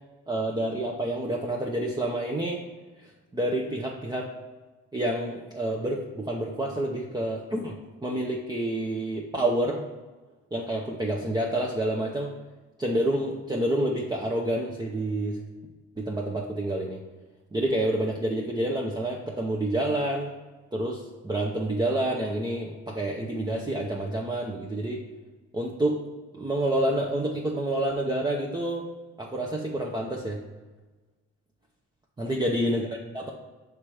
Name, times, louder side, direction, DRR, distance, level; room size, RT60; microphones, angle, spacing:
voice 1, 0.3-2.6 3.0-4.3 4.9-9.9 10.5-12.4 12.8-15.4 16.0-17.0 17.5-20.3 20.7-25.0 25.5-26.0 26.3-28.9 29.2-30.4 32.2-33.3, right 1 dB, 15° right, -2 dB, 0.7 m, -28 dB
5.8 x 3.3 x 4.8 m, 1.2 s
cardioid pair, 90°, 30 cm